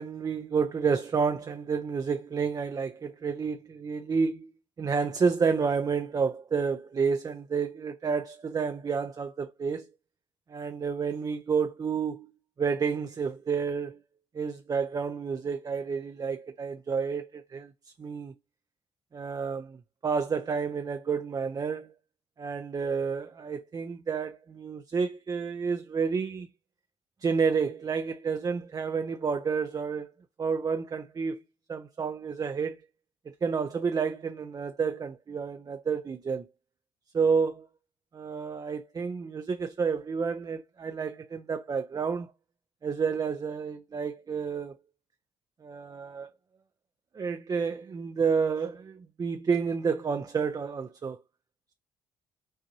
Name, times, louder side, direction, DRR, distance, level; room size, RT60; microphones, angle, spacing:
voice 1, 0.0-4.5 4.8-9.9 10.5-12.3 12.6-14.0 14.3-18.3 19.1-19.8 20.0-21.9 22.4-26.5 27.2-30.1 30.4-31.4 31.7-32.8 33.4-36.5 37.1-37.7 38.1-42.3 42.8-44.8 45.6-46.3 47.1-51.2, right 5 dB, 35° right, 0.5 m, -30 dB
5.4 x 2.6 x 2.7 m
supercardioid pair, 65°, 11 cm